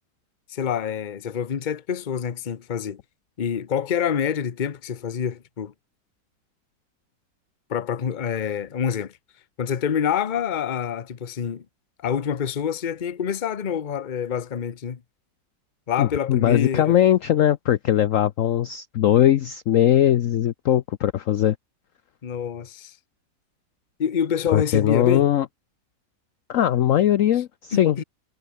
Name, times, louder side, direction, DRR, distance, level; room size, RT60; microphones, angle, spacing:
voice 1, 0.5-3.0 3.4-5.7 7.7-9.1 9.6-11.6 12.0-15.0 15.9-16.9 22.2-22.9 24.0-25.3 27.7-28.0, left 8 dB, 35° left, 0.8 m, -26 dB
voice 2, 16.0-21.6 24.5-25.5 26.5-28.0, left 11 dB, 65° left, 0.8 m, -20 dB
omnidirectional pair, 1.9 m